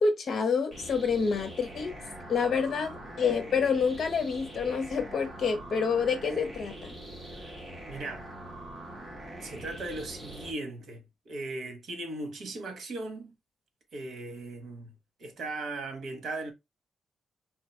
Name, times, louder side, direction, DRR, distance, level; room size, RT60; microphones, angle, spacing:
voice 1, 0.0-2.0 2.3-6.9, left 5 dB, 55° left, 1.2 m, -28 dB
sound 1, 0.7-10.5, right 1 dB, 15° right, 2.2 m, -43 dB
voice 2, 7.9-8.2 9.4-13.3 13.9-14.9 15.2-16.5, right 2 dB, 65° right, 1.5 m, -38 dB
4.4 x 3.3 x 3.2 m
wide cardioid pair, 160°, 0 cm